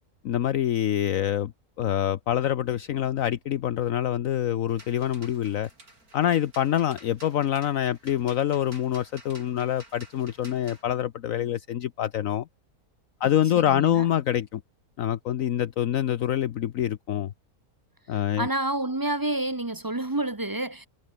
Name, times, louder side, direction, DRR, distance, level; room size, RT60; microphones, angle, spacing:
voice 1, 0.2-1.5 1.8-5.7 6.1-12.5 13.2-14.6 15.0-17.3 18.1-18.5, left 11 dB, 65° left, 1.1 m, -26 dB
sound 1, 4.7-10.8, right 2 dB, 75° right, 7.2 m, -51 dB
voice 2, 13.6-14.1 18.4-20.9, right 2 dB, 20° right, 0.8 m, -29 dB
omnidirectional pair, 1.6 m